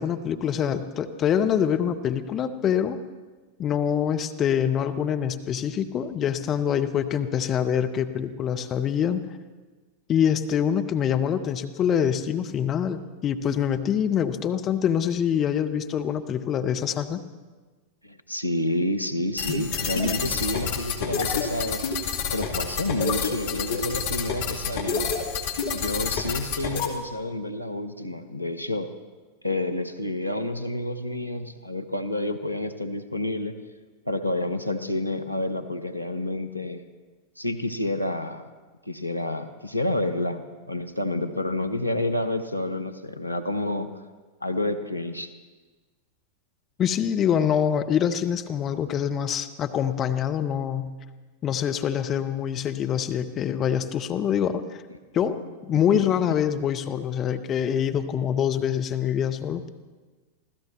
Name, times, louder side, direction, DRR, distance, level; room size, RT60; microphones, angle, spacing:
voice 1, 0.0-3.0 3.6-9.2 10.1-17.2 46.8-50.9 51.4-54.6 55.1-55.4 55.7-59.7, left 8 dB, 30° left, 7 dB, 0.8 m, -25 dB
voice 2, 18.0-21.9 22.3-25.1 25.7-28.9 29.4-33.5 34.1-36.8 37.4-38.4 38.8-43.9 44.4-45.3 55.2-56.4, left 1 dB, 90° left, 8 dB, 0.8 m, -29 dB
sound 1, 19.4-26.9, left 5 dB, 55° left, 1.9 m, -28 dB
26.0 x 16.0 x 3.1 m, 1.3 s
figure-of-eight pair, 90°, 0 cm